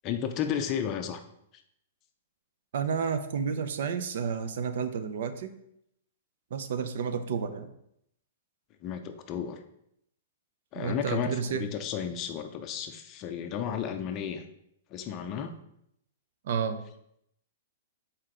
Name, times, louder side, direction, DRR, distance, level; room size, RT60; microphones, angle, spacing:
voice 1, 0.0-1.2 8.8-9.6 10.7-14.4 14.9-15.5, left 8 dB, 30° left, 7 dB, 0.5 m, -33 dB
voice 2, 2.7-5.5 6.5-7.7 10.7-11.7 16.4-16.8, right 6 dB, 65° right, 10 dB, 0.6 m, -31 dB
6.5 x 4.4 x 3.7 m, 0.76 s
hypercardioid pair, 155°, 0 cm